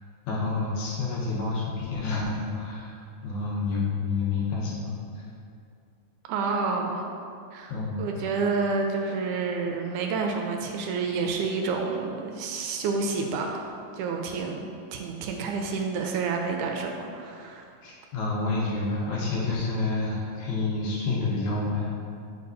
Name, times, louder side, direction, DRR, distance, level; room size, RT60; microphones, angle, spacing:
voice 1, 0.2-2.9 3.2-5.2 7.7-8.0 17.8-21.9, left 3 dB, 70° left, -6 dB, 2.2 m, -29 dB
voice 2, 6.3-7.0 7.5-7.7 8.0-13.7 13.9-17.6, right 4 dB, 80° right, 2 dB, 2.0 m, -29 dB
7.8 x 5.0 x 2.6 m, 2.4 s
omnidirectional pair, 3.7 m